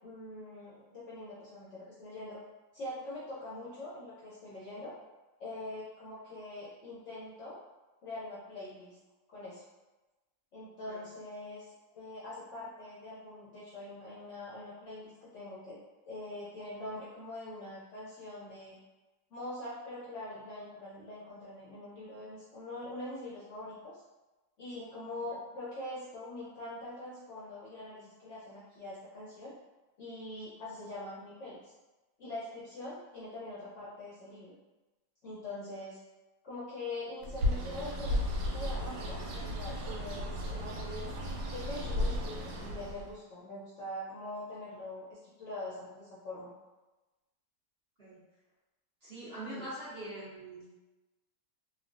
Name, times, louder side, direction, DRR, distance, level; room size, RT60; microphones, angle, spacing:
voice 1, 0.0-2.4 2.7-4.9 5.4-7.6 8.0-9.0 9.3-9.6 10.5-15.8 16.1-18.8 19.3-24.0 24.6-29.5 30.0-31.7 32.2-34.5 35.2-36.0 36.4-38.2 38.5-41.1 41.5-46.5 49.5-49.7, left 2 dB, 65° left, -9 dB, 0.7 m, -43 dB
Bird, 37.2-43.1, left 1 dB, 80° right, 1.2 m, -34 dB
voice 2, 49.0-50.7, right 1 dB, 45° right, -11 dB, 0.9 m, -43 dB
3.2 x 2.1 x 2.5 m, 1.1 s
omnidirectional pair, 1.8 m